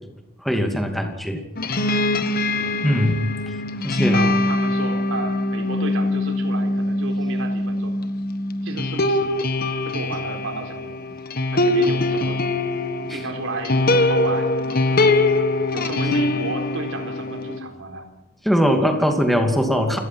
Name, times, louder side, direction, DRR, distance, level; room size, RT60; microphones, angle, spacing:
voice 1, 0.4-1.4 2.8-3.2 3.8-4.3 13.1-13.2 18.4-20.0, equal, ahead, 4 dB, 2.6 m, -21 dB
sound 1, 1.6-17.6, left 2 dB, 40° left, 1.5 m, -22 dB
voice 2, 4.1-8.0 8.6-9.3 9.8-11.0 11.5-12.4 13.0-14.8 15.7-18.0, right 2 dB, 65° right, 4 dB, 4.1 m, -32 dB
29.0 x 18.0 x 6.0 m, 0.93 s
head